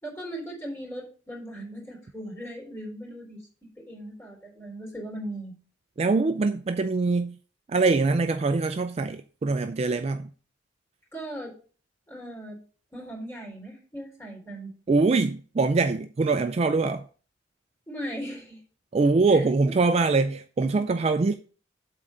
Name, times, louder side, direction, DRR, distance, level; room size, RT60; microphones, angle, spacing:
voice 1, 0.0-3.4 3.9-5.5 11.1-11.5 12.1-12.6 12.9-14.7 17.9-18.6 19.3-19.7, right 1 dB, 15° left, 3.6 m, -38 dB
voice 2, 6.0-7.4 7.7-10.3 14.9-17.0 18.9-21.3, right 3 dB, 30° right, 0.3 m, -23 dB
7.9 x 3.7 x 6.3 m
head